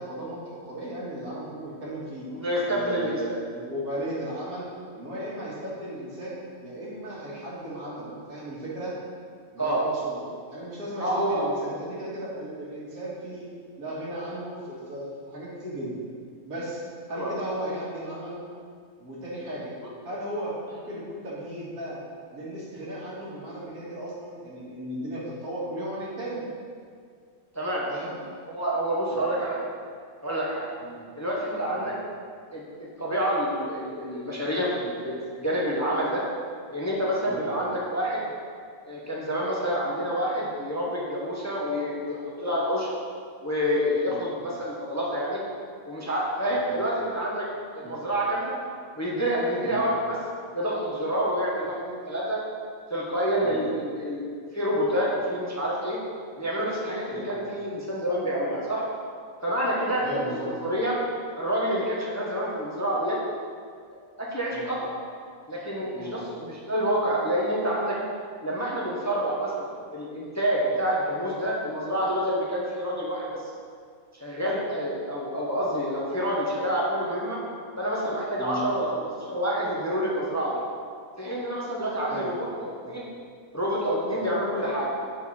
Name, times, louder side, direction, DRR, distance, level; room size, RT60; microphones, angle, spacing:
voice 1, 0.0-2.3 2.7-4.7 4.9-8.9 9.5-10.2 10.5-13.5 13.8-16.0 16.4-16.8 17.1-18.5 19.0-19.7 20.0-22.0 22.3-26.5 27.9-28.2 29.1-29.2 30.8-31.0 31.7-31.9 37.2-37.4 44.1-44.3 46.5-46.7 47.8-48.0 49.6-49.9 53.4-53.6 57.1-57.3 60.0-60.5 64.5-64.7 65.9-66.2 78.4-78.6 82.0-82.3 84.1-84.3, right 1 dB, 75° right, -7 dB, 2.3 m, -36 dB
voice 2, 2.3-3.4 9.6-9.8 11.0-11.4 17.1-17.3 19.8-19.9 27.5-27.9 28.5-29.6 30.2-30.7 31.2-31.9 32.5-32.6 33.0-36.2 36.7-38.3 38.9-42.9 43.4-45.4 45.9-47.5 47.7-48.5 49.0-50.2 50.5-52.4 52.9-56.0 56.4-58.9 59.4-61.0 61.4-63.2 64.2-64.9 65.5-68.0 68.4-73.4 74.2-77.4 77.8-80.6 81.2-83.1 83.5-84.9, equal, 15° left, -5 dB, 0.9 m, -28 dB
6.5 x 6.4 x 4.2 m, 2.1 s
omnidirectional pair, 1.5 m